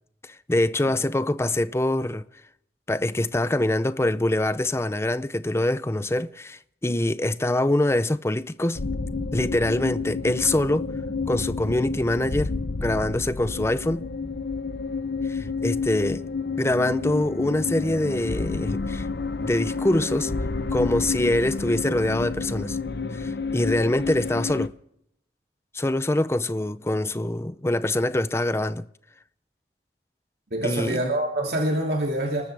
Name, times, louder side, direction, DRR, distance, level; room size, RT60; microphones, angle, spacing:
voice 1, 0.2-2.2 2.9-8.8 9.3-10.9 11.3-12.5 12.8-14.1 15.3-16.3 16.6-19.1 19.4-20.3 20.7-22.8 23.1-24.7 25.7-28.9 30.6-31.0, left 1 dB, 15° left, 0.5 m, -24 dB
sound 1, 8.8-24.7, left 4 dB, 60° left, 0.8 m, -30 dB
voice 2, 30.5-32.4, right 1 dB, 60° right, 2.7 m, -25 dB
30.0 x 13.5 x 3.4 m
head